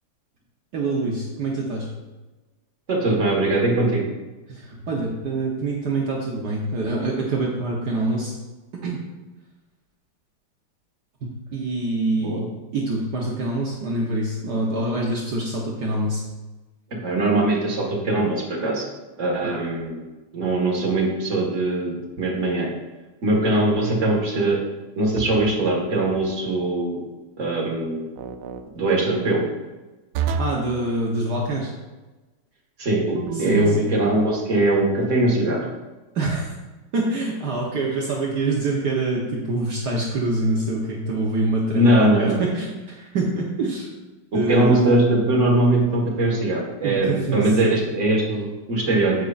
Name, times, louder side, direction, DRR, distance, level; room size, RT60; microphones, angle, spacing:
voice 1, 0.7-1.9 4.5-8.3 8.8-9.0 11.2-12.4 12.7-16.2 30.4-31.7 33.3-33.9 36.1-36.5 36.9-43.9 44.3-44.7 46.8-47.8, right 2 dB, 60° right, -3 dB, 1.4 m, -25 dB
voice 2, 2.9-4.0 12.2-12.5 17.0-18.9 19.2-20.0 20.3-22.7 23.2-24.6 25.0-27.1 27.4-28.1 28.7-29.4 32.8-35.7 41.8-42.4 44.3-49.1, right 2 dB, 40° right, -2 dB, 1.9 m, -21 dB
sound 1, 25.1-25.6 28.2-28.6 30.1-30.7 33.1-33.9, right 6 dB, 90° right, 1.4 m, -29 dB
9.1 x 8.1 x 2.5 m, 1.2 s
omnidirectional pair, 2.3 m